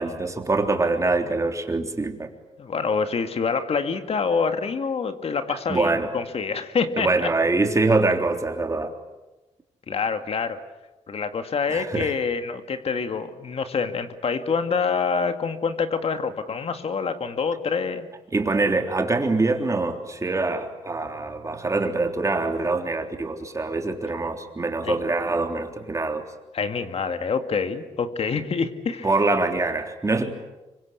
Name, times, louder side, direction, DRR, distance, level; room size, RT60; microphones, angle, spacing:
voice 1, 0.0-2.3 5.7-6.1 7.0-8.9 11.7-12.1 18.3-26.2 29.0-30.3, right 3 dB, 25° right, 4 dB, 3.5 m, -24 dB
voice 2, 2.6-7.3 9.9-10.6 11.1-18.1 24.8-25.0 26.5-29.1, left 5 dB, 50° left, 8 dB, 2.2 m, -26 dB
25.5 x 24.5 x 8.5 m, 1.1 s
cardioid pair, 95°, 13 cm